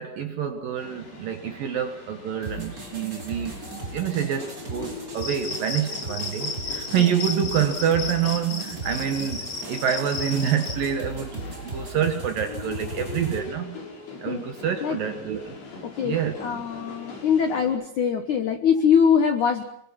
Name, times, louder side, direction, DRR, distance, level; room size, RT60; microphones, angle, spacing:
voice 1, 0.0-3.5 3.9-9.4 9.7-13.8 14.2-15.5 16.0-16.4, right 8 dB, 65° right, 6 dB, 2.3 m, -27 dB
sound 1, 0.8-17.7, left 3 dB, 55° left, 8.3 m, -41 dB
sound 2, 2.4-13.4, right 2 dB, 15° right, 4.8 m, -38 dB
Cricket, 5.1-10.8, left 3 dB, 30° left, 2.5 m, -34 dB
voice 2, 15.8-19.6, left 7 dB, 80° left, 7 dB, 1.7 m, -23 dB
26.5 x 22.5 x 5.9 m, 0.71 s
omnidirectional pair, 5.8 m